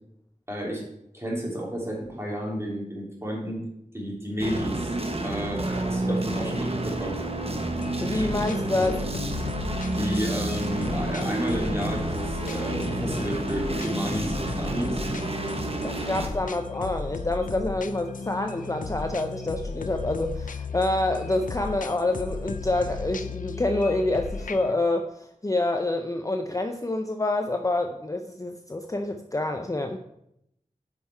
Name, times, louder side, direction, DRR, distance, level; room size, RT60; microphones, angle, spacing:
voice 1, 0.5-0.8 1.1-3.6 3.9-5.0 5.2-7.1 9.9-15.0, equal, 20° right, -3 dB, 2.8 m, -31 dB
sound 1, 4.4-16.3, right 2 dB, 45° right, 1.0 m, -30 dB
sound 2, 7.8-24.7, left 5 dB, 80° left, 0.4 m, -35 dB
voice 2, 8.0-9.1 15.8-30.0, left 2 dB, 25° left, 5 dB, 0.5 m, -27 dB
9.0 x 5.6 x 4.4 m, 0.79 s
wide cardioid pair, 65°, 14 cm